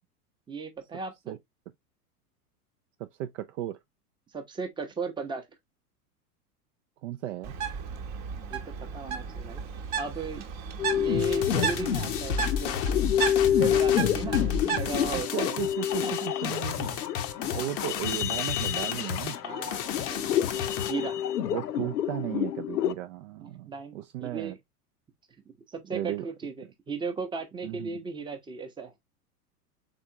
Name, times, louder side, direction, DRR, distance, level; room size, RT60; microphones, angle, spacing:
voice 1, 0.5-1.4 4.3-5.5 8.5-9.7 10.0-10.5 10.9-12.8 13.5-15.6 16.0-16.3 17.4-17.7 19.4-21.2 23.4-24.6 25.7-28.9, right 4 dB, 10° right, 0.7 m, -36 dB
voice 2, 3.0-3.8 7.0-7.5 15.1-17.0 17.5-19.4 21.5-24.6 25.9-26.3 27.6-28.0, right 13 dB, 55° right, 0.5 m, -35 dB
Bird, 7.4-15.2, right 6 dB, 35° right, 0.9 m, -34 dB
sound 1, 10.8-22.9, left 10 dB, 80° left, 0.6 m, -28 dB
sound 2, 11.2-20.9, left 9 dB, 35° left, 0.6 m, -33 dB
3.7 x 3.4 x 2.7 m
figure-of-eight pair, 90°, 47 cm